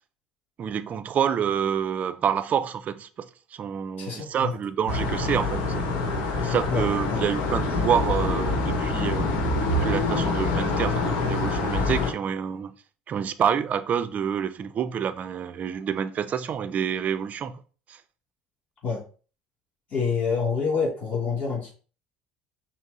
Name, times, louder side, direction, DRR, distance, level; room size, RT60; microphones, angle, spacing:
voice 1, 0.6-5.9 6.4-9.3 9.7-12.7 13.1-17.5 17.9-18.0, right 8 dB, 40° right, 0.5 m, -27 dB
voice 2, 4.0-4.5 6.7-6.8 7.1-7.2 18.8-19.0 19.9-21.7, left 5 dB, 45° left, 2.5 m, -27 dB
sound 1, 4.9-12.1, left 3 dB, 65° left, 1.0 m, -25 dB
5.8 x 2.0 x 4.1 m
hypercardioid pair, 70°, 4 cm